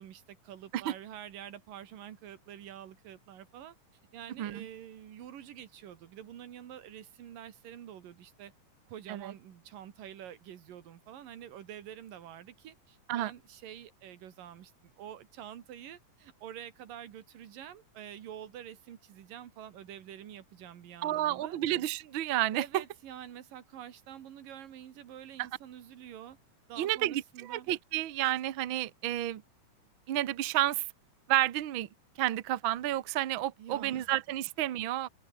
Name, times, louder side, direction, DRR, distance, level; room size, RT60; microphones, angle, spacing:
voice 1, 0.0-3.8 4.1-8.5 8.9-21.6 22.5-26.4 26.7-27.7 33.6-34.2, right 10 dB, 85° right, 3.6 m, -47 dB
voice 2, 21.0-22.8 26.8-27.2 27.5-29.4 30.1-30.8 31.3-31.9 32.2-35.1, right 14 dB, 65° right, 1.3 m, -30 dB
open air
omnidirectional pair, 3.8 m